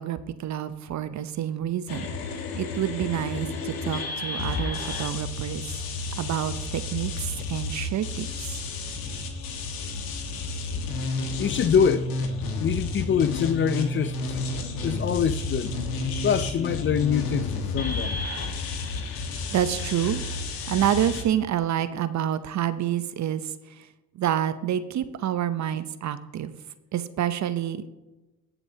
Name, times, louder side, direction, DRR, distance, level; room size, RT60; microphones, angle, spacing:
voice 1, 0.0-5.6 6.2-8.6 19.5-20.2 20.7-23.9 24.1-26.5 26.9-27.9, right 10 dB, 50° right, 0.8 m, -28 dB
sound 1, 1.9-21.2, left 3 dB, 70° left, 1.7 m, -31 dB
voice 2, 11.4-12.1 12.6-14.4 14.8-15.7 16.2-18.2, left 7 dB, 35° left, 0.5 m, -24 dB
19.5 x 7.0 x 2.8 m
supercardioid pair, 75°, 37 cm